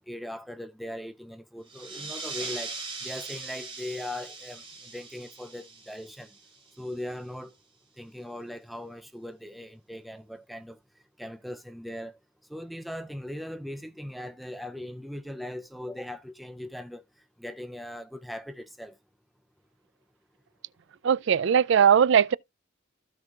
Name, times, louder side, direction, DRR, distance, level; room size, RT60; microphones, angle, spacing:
voice 1, 0.1-2.7 3.0-6.3 6.8-7.5 8.0-10.8 11.2-12.1 12.5-17.0 17.4-18.9, left 1 dB, ahead, 0.5 m, -39 dB
sound 1, 1.7-6.9, right 3 dB, 25° right, 3.1 m, -40 dB
voice 2, 21.0-22.4, right 8 dB, 65° right, 0.4 m, -20 dB
15.5 x 5.5 x 2.4 m
head